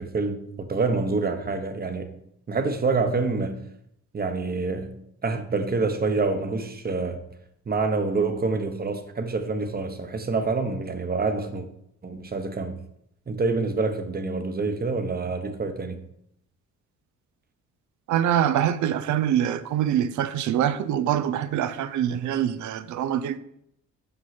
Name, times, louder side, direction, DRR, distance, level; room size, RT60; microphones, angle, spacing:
voice 1, 0.0-2.2 2.5-3.6 4.1-7.2 7.7-11.6 12.0-12.8 13.3-16.0, right 3 dB, 30° right, 1.0 m, -27 dB
voice 2, 18.1-23.4, right 10 dB, 75° right, 0.5 m, -24 dB
5.5 x 5.5 x 5.8 m
cardioid pair, 90°, 30 cm